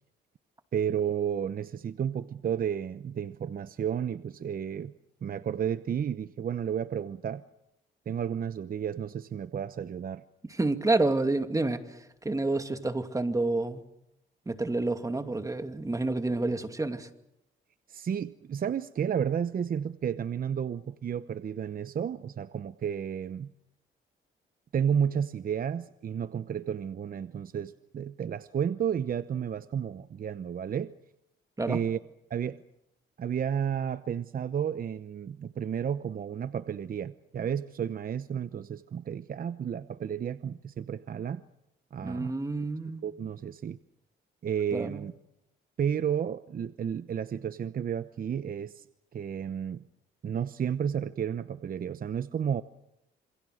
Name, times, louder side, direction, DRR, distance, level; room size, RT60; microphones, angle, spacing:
voice 1, 0.7-4.9 5.2-7.4 8.1-10.2 17.9-23.5 24.7-30.9 31.7-32.0 32.3-32.6 33.2-41.4 41.9-42.3 43.0-43.8 44.4-45.1 45.8-48.8 49.1-49.8 50.2-52.6, right 8 dB, 45° right, 12 dB, 0.9 m, -32 dB
voice 2, 10.4-12.0 12.2-13.8 14.5-17.1 31.6-31.8 42.0-43.0 44.7-45.1, right 2 dB, 15° right, 7 dB, 2.5 m, -29 dB
27.5 x 25.5 x 6.5 m, 0.83 s
cardioid pair, 90°, 20 cm